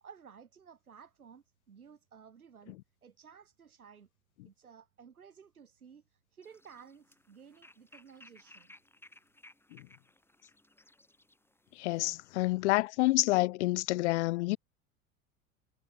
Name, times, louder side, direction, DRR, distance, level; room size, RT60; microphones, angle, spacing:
voice 1, 0.0-4.1 4.4-8.7, right 7 dB, 80° right, 1.8 m, -55 dB
sound 1, 6.4-12.4, left 1 dB, 5° left, 3.8 m, -60 dB
voice 2, 11.8-14.6, left 20 dB, 55° left, 0.5 m, -28 dB
figure-of-eight pair, 75°, 43 cm